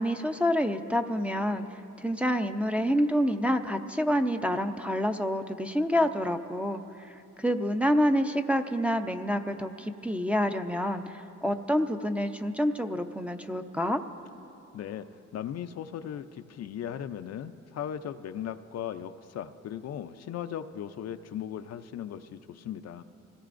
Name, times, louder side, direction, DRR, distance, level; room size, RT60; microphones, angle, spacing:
voice 1, 0.0-1.6 2.0-6.8 7.4-14.0, equal, 5° right, 5 dB, 0.6 m, -27 dB
voice 2, 14.7-15.1 15.3-23.0, left 9 dB, 55° left, 9 dB, 0.5 m, -37 dB
24.5 x 17.0 x 2.6 m, 2.8 s
cardioid pair, 90°, 30 cm